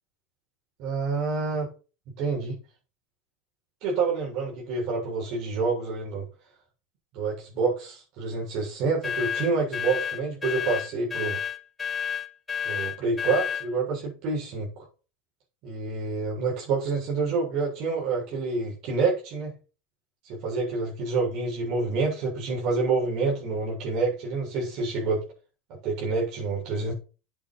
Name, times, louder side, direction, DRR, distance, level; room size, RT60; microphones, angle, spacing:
voice 1, 0.8-1.7 2.2-2.6 3.8-6.3 7.1-11.4 12.7-14.7 15.6-19.5 20.2-25.2 25.8-26.9, right 4 dB, 55° right, 7.2 m, -27 dB
sound 1, 9.0-13.7, left 7 dB, 15° left, 1.6 m, -30 dB
9.1 x 8.3 x 6.1 m
supercardioid pair, 110°, 0 cm